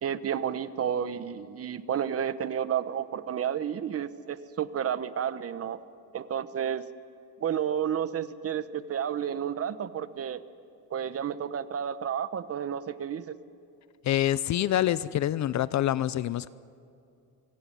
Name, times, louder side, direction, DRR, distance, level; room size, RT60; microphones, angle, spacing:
voice 1, 0.0-5.8 6.1-6.8 7.4-10.4 10.9-13.3, right 8 dB, 35° right, 13 dB, 1.1 m, -31 dB
voice 2, 14.0-16.5, left 12 dB, 45° left, 17 dB, 0.6 m, -26 dB
25.0 x 23.5 x 9.4 m, 2.6 s
cardioid pair, 120°, 41 cm